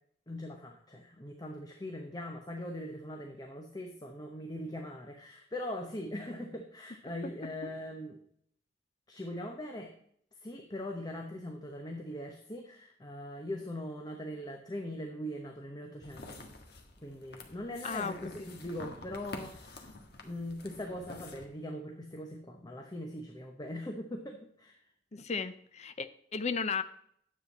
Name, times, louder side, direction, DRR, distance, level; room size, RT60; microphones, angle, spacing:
voice 1, 0.3-8.2 9.1-9.9 10.4-16.4 17.0-19.8 20.2-24.8, left 1 dB, 20° left, 3 dB, 0.9 m, -41 dB
sound 1, 16.0-21.5, left 2 dB, 60° left, 1.5 m, -48 dB
voice 2, 17.8-18.1 25.1-26.8, left 5 dB, 40° left, 12 dB, 0.6 m, -34 dB
9.8 x 7.8 x 4.2 m, 0.67 s
head